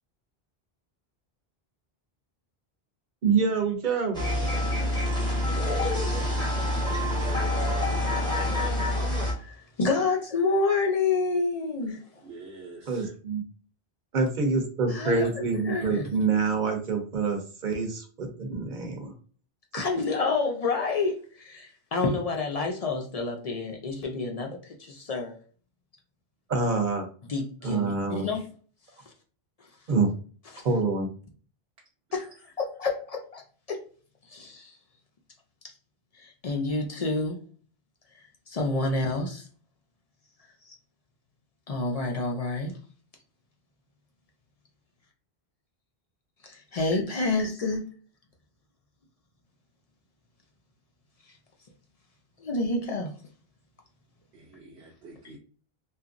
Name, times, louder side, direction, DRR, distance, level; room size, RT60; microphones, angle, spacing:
voice 1, 3.2-4.2 12.9-13.4 14.1-19.1 26.5-27.1 27.6-28.3 29.9-30.1 30.6-31.1, right 4 dB, 55° right, 0.8 m, -26 dB
sound 1, 4.1-9.3, left 1 dB, 5° left, 0.7 m, -26 dB
voice 2, 9.4-12.0 14.9-16.1 19.7-25.4 27.3-28.4 32.1-32.3 32.6-33.4 33.7-33.8 34.3-34.7 36.2-37.4 38.5-39.4 41.7-42.7 46.4-47.8 52.4-53.1, left 3 dB, 50° left, 0.5 m, -28 dB
voice 3, 11.8-13.1 27.6-27.8 32.1-32.2 54.3-55.4, right 3 dB, 85° right, 0.9 m, -48 dB
2.9 x 2.4 x 2.5 m
omnidirectional pair, 1.0 m